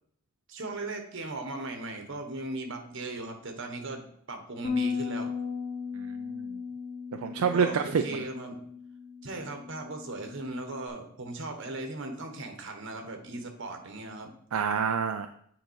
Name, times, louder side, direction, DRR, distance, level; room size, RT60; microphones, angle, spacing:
voice 1, 0.5-5.3 7.5-8.6 9.2-14.3, right 2 dB, 60° right, 4 dB, 1.3 m, -38 dB
Bass guitar, 4.6-10.9, left 5 dB, 35° left, 0.9 m, -36 dB
voice 2, 6.0-6.5 7.1-8.2 14.5-15.3, right 6 dB, 80° right, 6 dB, 0.4 m, -28 dB
8.9 x 3.8 x 4.7 m, 0.67 s
head